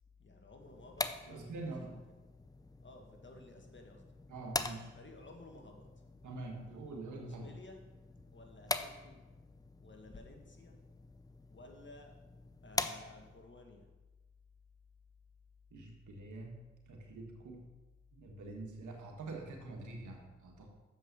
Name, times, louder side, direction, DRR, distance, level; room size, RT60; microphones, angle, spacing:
voice 1, 0.2-2.0 2.8-4.0 4.9-5.9 7.2-7.8 8.3-9.2 9.8-10.8 11.5-12.1 12.6-13.9, left 2 dB, 40° left, 2 dB, 1.9 m, -54 dB
sound 1, 0.6-13.5, left 2 dB, 10° left, 0.6 m, -44 dB
voice 2, 1.3-1.9 4.3-4.9 6.2-7.5 15.7-17.7 18.1-20.7, right 2 dB, 85° right, 1 dB, 1.7 m, -45 dB
7.3 x 5.5 x 6.8 m, 1.1 s
supercardioid pair, 50°, 29 cm